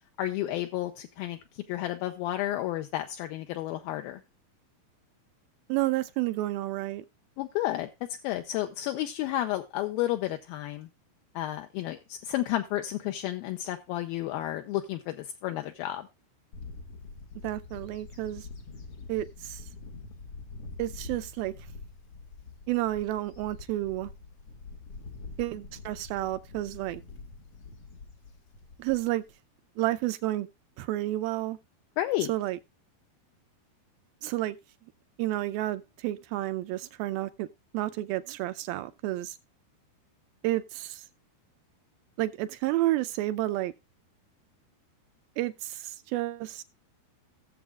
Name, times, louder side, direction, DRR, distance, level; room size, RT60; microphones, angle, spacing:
voice 1, 0.2-4.2 7.4-7.9 8.2-10.9 11.4-16.1 32.0-32.3, left 14 dB, 80° left, 2.3 m, -31 dB
voice 2, 5.7-7.1 17.4-18.5 19.1-19.7 20.8-21.5 22.7-24.1 25.4-27.0 28.8-29.2 29.8-30.5 30.8-31.6 32.3-32.6 34.2-34.6 35.2-37.5 37.7-39.4 40.4-41.0 42.2-43.7 45.4-46.6, right 16 dB, 80° right, 2.2 m, -30 dB
Bird / Wind, 16.5-29.3, left 3 dB, 60° left, 1.5 m, -45 dB
17.5 x 7.1 x 2.3 m
omnidirectional pair, 4.6 m